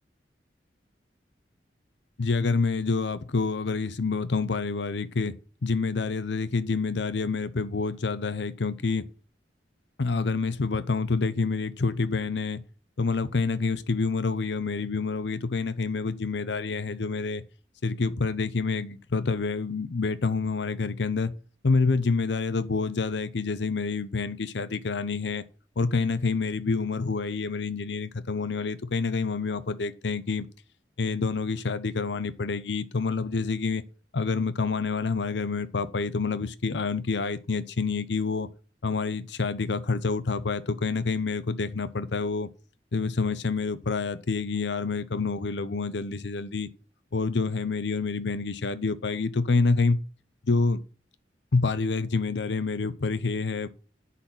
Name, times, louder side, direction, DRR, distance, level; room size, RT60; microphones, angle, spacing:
voice 1, 2.2-5.3 5.6-9.0 10.0-12.6 13.0-17.4 17.8-21.3 21.6-25.4 25.8-30.5 31.0-33.8 34.1-38.5 38.8-42.5 42.9-46.7 47.1-50.0 50.5-50.8 51.5-53.7, left 4 dB, 80° left, 0.7 m, -27 dB
10.0 x 4.2 x 7.1 m
head